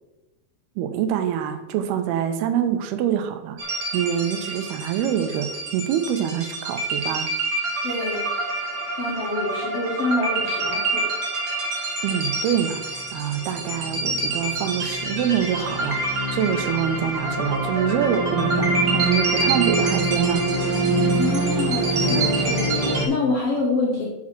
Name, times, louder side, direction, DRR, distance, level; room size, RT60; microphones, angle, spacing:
voice 1, 0.8-3.6 3.9-7.3 12.0-16.0 16.3-20.5, right 9 dB, 85° right, 9 dB, 2.8 m, -25 dB
sound 1, 3.6-23.1, right 2 dB, 40° right, 1.5 m, -25 dB
voice 2, 7.8-8.3 9.0-11.1 21.1-24.1, left 3 dB, 60° left, -4 dB, 1.7 m, -26 dB
6.2 x 6.1 x 7.4 m, 1.0 s
omnidirectional pair, 4.4 m